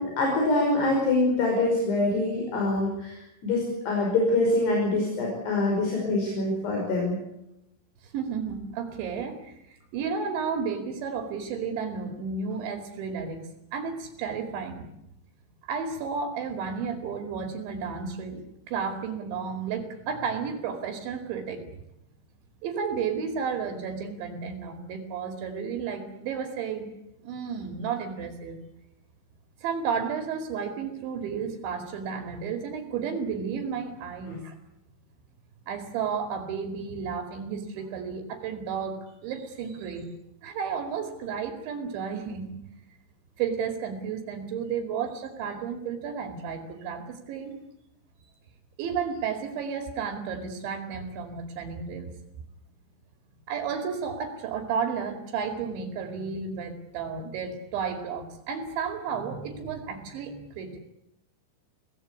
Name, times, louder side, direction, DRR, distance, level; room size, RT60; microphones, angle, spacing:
voice 1, 0.0-7.2 34.2-34.3, left 2 dB, 60° left, -1 dB, 7.5 m, -25 dB
voice 2, 8.0-13.4 13.7-14.9 15.6-21.6 22.6-26.9 27.2-28.6 29.6-34.6 35.7-40.1 40.4-42.6 43.4-47.6 48.8-52.1 53.5-60.8, right 6 dB, 75° right, 5 dB, 4.7 m, -32 dB
25.0 x 18.0 x 9.8 m, 0.84 s
omnidirectional pair, 5.4 m